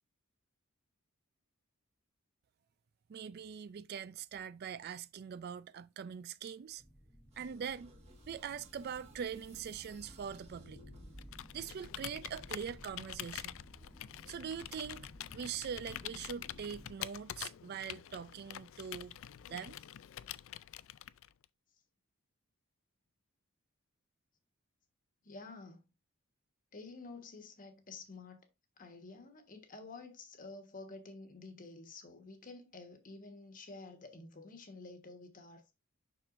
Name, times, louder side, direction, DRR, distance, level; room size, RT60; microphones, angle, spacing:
voice 1, 3.1-6.8 7.4-7.9 8.3-10.8 11.5-13.6 14.3-15.1 15.3-19.2 19.5-19.8, right 7 dB, 45° right, 0.3 m, -42 dB
sound 1, 6.8-16.9, equal, 10° left, 1.0 m, -57 dB
sound 2, 7.3-11.7, right 1 dB, 30° right, 1.5 m, -58 dB
Computer keyboard, 11.1-21.4, left 12 dB, 65° left, 0.3 m, -46 dB
voice 2, 25.2-25.8 26.7-28.5 28.8-35.7, left 3 dB, 40° left, 1.3 m, -50 dB
7.0 x 6.1 x 2.5 m
head